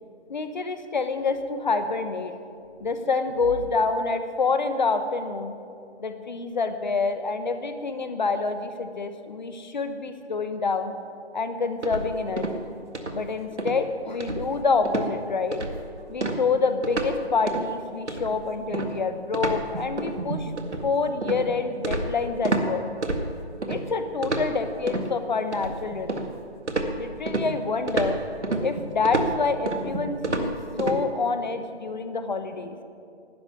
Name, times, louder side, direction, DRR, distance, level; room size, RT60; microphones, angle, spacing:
voice 1, 0.3-2.3 2.8-5.5 6.0-10.9 11.3-12.6 13.1-15.6 16.1-20.5 20.8-22.8 23.7-26.3 27.0-28.2 28.6-32.8, left 4 dB, 40° left, 9 dB, 1.2 m, -27 dB
sound 1, 11.8-12.7 12.9-13.3 13.6-13.8 14.2-14.6 14.9-15.1 15.5-15.9 16.2-17.2 17.5-17.7 18.1-22.7 23.0-23.8 24.2-25.1 25.5-26.4 26.7-31.0, right 2 dB, 90° right, 2.0 m, -29 dB
11.5 x 11.5 x 9.5 m, 2.4 s
figure-of-eight pair, 160°, 34 cm